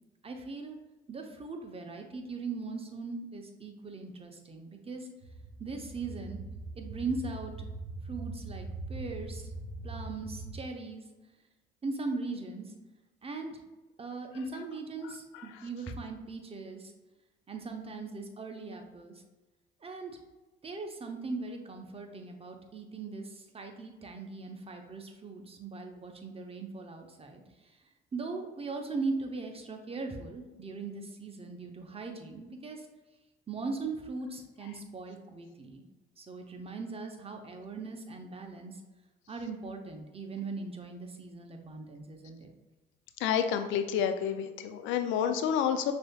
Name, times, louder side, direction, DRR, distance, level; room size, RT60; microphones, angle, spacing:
voice 1, 0.2-0.8 1.1-5.1 5.6-6.4 6.7-7.5 8.0-9.5 9.8-11.0 11.8-12.7 13.2-13.6 14.0-16.9 17.5-19.1 19.8-20.2 20.6-27.8 28.1-32.9 33.5-35.8 36.2-38.8 39.3-42.5, right 3 dB, 30° right, 4 dB, 0.8 m, -39 dB
sound 1, 5.2-10.6, right 3 dB, 70° right, 0.8 m, -41 dB
voice 2, 43.2-45.9, left 8 dB, 70° left, 8 dB, 0.4 m, -29 dB
6.1 x 2.7 x 2.3 m, 1.1 s
hypercardioid pair, 60°, 21 cm